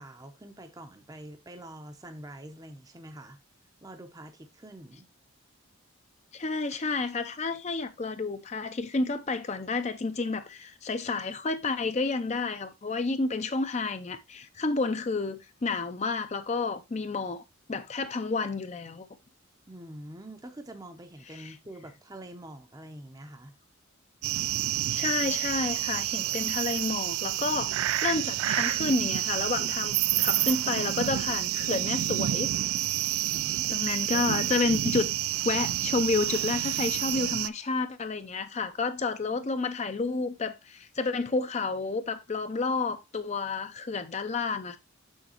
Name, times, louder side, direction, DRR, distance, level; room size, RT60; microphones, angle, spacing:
voice 1, 0.0-3.4 3.8-5.1 19.7-23.5 33.1-33.7, right 1 dB, 15° right, 0.6 m, -45 dB
voice 2, 6.3-17.4 17.7-19.1 21.3-21.6 24.9-32.5 33.7-35.1 35.4-44.8, left 3 dB, 30° left, 0.5 m, -30 dB
sound 1, 24.2-37.5, right 14 dB, 90° right, 0.3 m, -29 dB
6.4 x 6.4 x 2.9 m
head